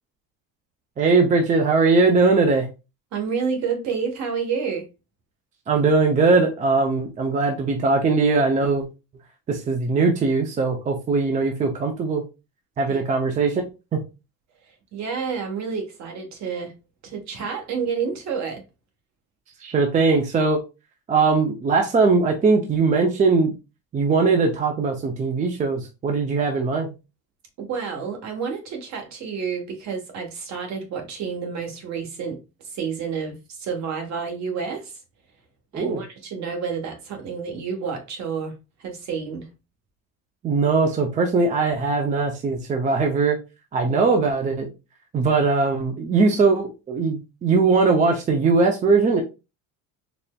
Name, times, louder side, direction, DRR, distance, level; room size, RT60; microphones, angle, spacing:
voice 1, 1.0-2.7 5.7-8.8 9.5-12.2 12.8-13.6 13.9-14.0 19.6-20.6 21.1-23.5 23.9-26.9 35.7-36.0 40.4-43.4 43.7-44.7 45.1-49.2, right 4 dB, 20° right, 0.4 m, -20 dB
voice 2, 3.1-4.9 12.9-13.0 14.9-16.7 17.0-18.6 27.6-34.9 35.7-38.5 38.8-39.5 43.9-44.0, right 6 dB, 50° right, 1.2 m, -29 dB
4.2 x 3.2 x 2.2 m
cardioid pair, 160°, 35 cm